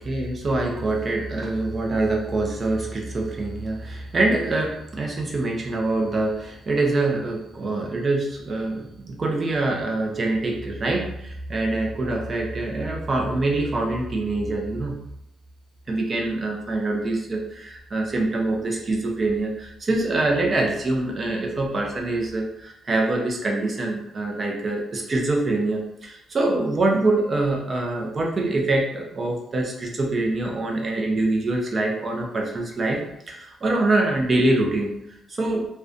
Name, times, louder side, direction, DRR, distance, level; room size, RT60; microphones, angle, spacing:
voice 1, 0.0-14.9 15.9-33.0 33.3-35.7, right 2 dB, 40° right, 1 dB, 0.5 m, -25 dB
2.4 x 2.2 x 2.5 m, 0.78 s
cardioid pair, 90°, 0 cm